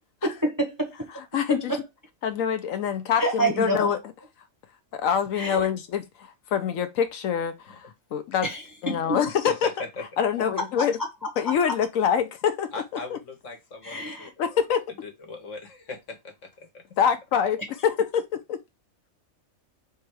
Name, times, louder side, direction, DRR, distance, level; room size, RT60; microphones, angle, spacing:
voice 1, 0.2-1.1 1.7-1.8 3.2-3.9 5.3-5.6 8.4-9.2 11.7-11.8 13.9-14.0, right 2 dB, 20° right, 0.7 m, -27 dB
voice 2, 1.1-1.8 2.2-4.0 4.9-8.5 8.8-9.7 10.2-11.0 11.4-12.7 13.1-13.2 14.4-14.9 17.0-18.6, left 8 dB, 80° left, 1.0 m, -25 dB
voice 3, 9.1-10.1 12.7-13.9 14.4-14.6 14.9-16.8, left 3 dB, 65° left, 1.5 m, -38 dB
3.5 x 3.3 x 4.6 m
omnidirectional pair, 1.4 m